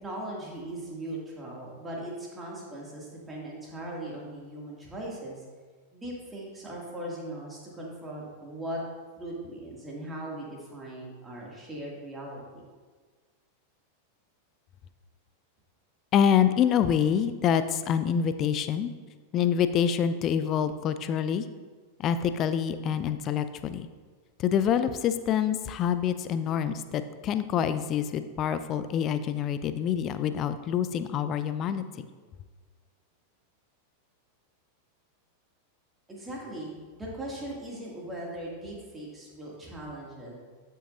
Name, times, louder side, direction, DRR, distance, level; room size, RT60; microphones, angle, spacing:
voice 1, 0.0-5.4 5.9-8.8 9.2-12.6 22.9-23.1 36.1-40.3, right 1 dB, 15° right, -4 dB, 2.4 m, -39 dB
voice 2, 16.1-18.9 19.3-21.5 22.0-23.9 24.4-32.1, left 8 dB, 35° left, 11 dB, 0.5 m, -26 dB
13.0 x 6.4 x 2.6 m, 1.4 s
figure-of-eight pair, 90°, 0 cm